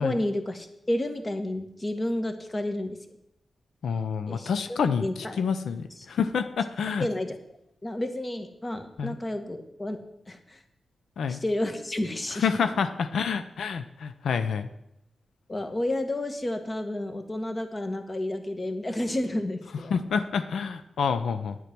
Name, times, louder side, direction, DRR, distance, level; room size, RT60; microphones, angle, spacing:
voice 1, 0.0-3.0 4.3-5.4 7.0-7.4 7.8-10.0 10.3-10.6 11.3-12.7 15.5-19.9, left 1 dB, 25° left, 7 dB, 1.4 m, -31 dB
voice 2, 3.8-5.1 5.4-7.1 9.0-9.1 11.2-11.4 12.3-14.7 19.9-21.6, left 6 dB, 90° left, 10 dB, 0.6 m, -28 dB
10.0 x 9.4 x 6.0 m, 0.81 s
wide cardioid pair, 100°, 0 cm